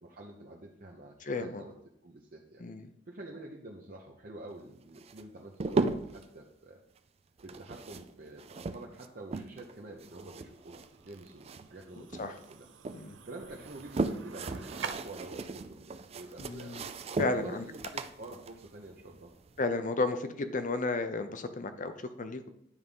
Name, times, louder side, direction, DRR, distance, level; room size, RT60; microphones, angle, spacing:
voice 1, 0.0-1.8 2.0-2.6 3.1-6.8 7.4-12.7 13.2-16.8 17.3-19.3, right 2 dB, 50° right, -1 dB, 0.8 m, -47 dB
voice 2, 1.2-1.6 2.6-2.9 12.0-12.4 12.9-13.2 16.4-16.9 17.2-17.7 19.6-22.5, left 3 dB, 45° left, 10 dB, 0.7 m, -33 dB
sound 1, 5.0-6.3 7.4-9.7 10.0-11.8 12.1-13.0 13.5-19.6, right 3 dB, 35° right, 0.4 m, -37 dB
sound 2, 9.5-14.9, right 6 dB, 85° right, 0.6 m, -47 dB
9.9 x 3.6 x 5.4 m, 0.79 s
head